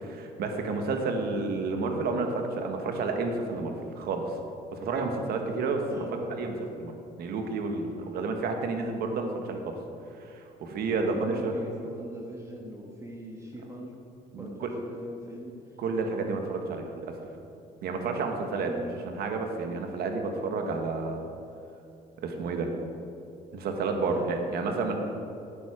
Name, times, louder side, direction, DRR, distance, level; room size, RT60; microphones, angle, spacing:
voice 1, 0.0-4.3 4.7-6.0 6.4-9.7 10.2-11.5 14.3-14.7 15.8-17.1 17.8-18.7 19.0-21.2 22.2-22.7 23.5-25.0, right 3 dB, 65° right, 4 dB, 1.5 m, -30 dB
voice 2, 5.7-6.5 11.2-14.0 14.4-15.5 18.7-19.0 23.9-24.3, equal, 15° right, -1 dB, 1.4 m, -41 dB
12.0 x 9.2 x 5.0 m, 2.7 s
cardioid pair, 110°, 17 cm